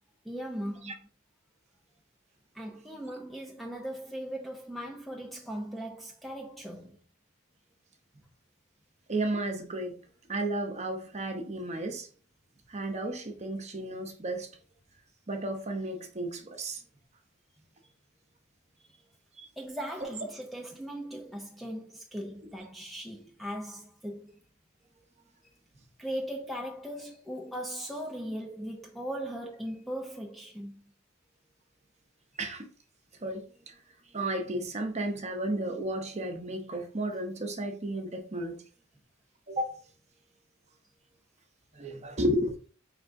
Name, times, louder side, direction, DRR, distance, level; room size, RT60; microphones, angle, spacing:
voice 1, 0.2-1.1 2.5-7.0 18.8-19.0 19.6-24.4 26.0-30.8, equal, ahead, 0.4 m, -39 dB
voice 2, 9.1-10.0 10.3-12.1 12.7-14.5 15.3-16.8 19.4-19.5 32.4-32.7 33.2-33.7 34.1-38.6 39.5-39.8 41.7-42.6, right 1 dB, 35° right, 0.8 m, -33 dB
4.9 x 3.2 x 2.6 m
head